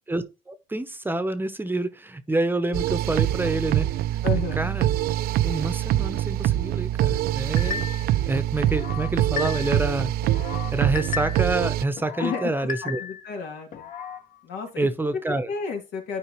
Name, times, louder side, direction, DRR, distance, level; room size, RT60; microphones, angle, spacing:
voice 1, 0.1-3.9 4.3-4.9 5.4-7.8 8.3-10.1 10.7-13.0 14.8-15.5, right 2 dB, 10° right, 0.7 m, -27 dB
sound 1, 2.7-11.8, right 14 dB, 65° right, 0.4 m, -24 dB
voice 2, 4.2-4.6 12.2-12.5 12.8-13.9 14.4-14.9 15.5-16.2, left 6 dB, 90° left, 2.4 m, -31 dB
sound 2, 7.6-8.1 8.6-9.9 10.2-11.6 12.0-13.3 13.7-14.2, left 7 dB, 50° left, 1.1 m, -34 dB
10.0 x 4.7 x 3.0 m
cardioid pair, 110°, 17 cm